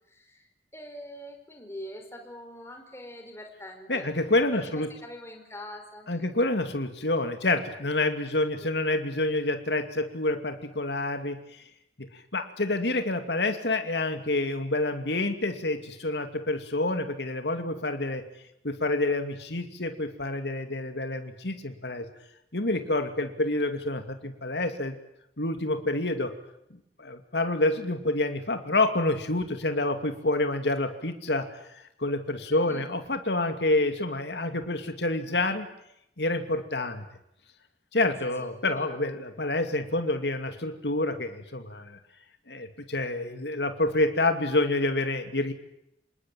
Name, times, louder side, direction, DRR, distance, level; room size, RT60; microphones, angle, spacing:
voice 1, 0.1-0.5 0.7-4.1 4.5-6.2 8.6-8.7 32.5-32.9 38.2-39.0, equal, 15° left, 4 dB, 4.8 m, -44 dB
voice 2, 3.9-4.9 6.1-11.4 12.0-12.1 12.3-18.3 18.6-22.1 22.5-25.0 25.4-26.3 27.0-31.5 32.0-35.7 36.2-37.1 37.9-42.0 42.5-45.5, left 2 dB, 80° left, 7 dB, 2.6 m, -28 dB
27.0 x 20.0 x 9.2 m, 0.79 s
head